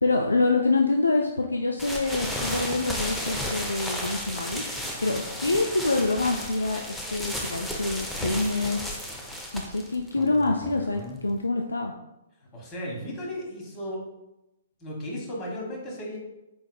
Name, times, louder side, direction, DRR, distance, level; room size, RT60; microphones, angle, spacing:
voice 1, 0.0-6.8 7.1-9.0 9.5-11.9, left 3 dB, 85° left, 2 dB, 0.3 m, -26 dB
sound 1, 1.8-11.4, equal, 5° left, 0.5 m, -34 dB
voice 2, 12.4-14.0 14.8-16.2, equal, 25° left, -2 dB, 1.3 m, -35 dB
4.5 x 3.6 x 2.3 m, 0.96 s
figure-of-eight pair, 120°, 0 cm